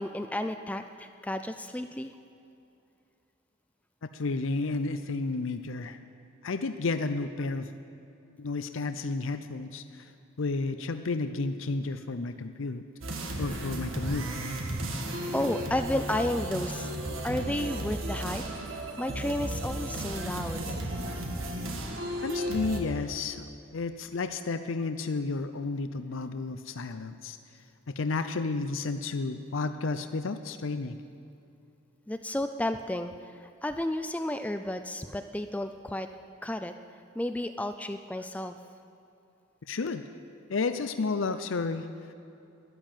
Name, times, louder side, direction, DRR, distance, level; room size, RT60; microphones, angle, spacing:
voice 1, 0.0-2.1 15.3-18.4 19.0-20.8 32.1-36.1 36.4-36.7 37.2-38.6, left 1 dB, 5° left, 8 dB, 0.3 m, -32 dB
voice 2, 4.1-6.0 6.4-7.7 8.4-10.1 10.4-12.8 13.4-14.3 22.2-27.4 28.0-31.0 39.7-40.0 40.5-41.9, left 3 dB, 70° left, 9 dB, 0.6 m, -32 dB
sound 1, 13.0-22.8, right 1 dB, 75° right, 1.8 m, -34 dB
12.5 x 11.0 x 8.9 m, 2.6 s
head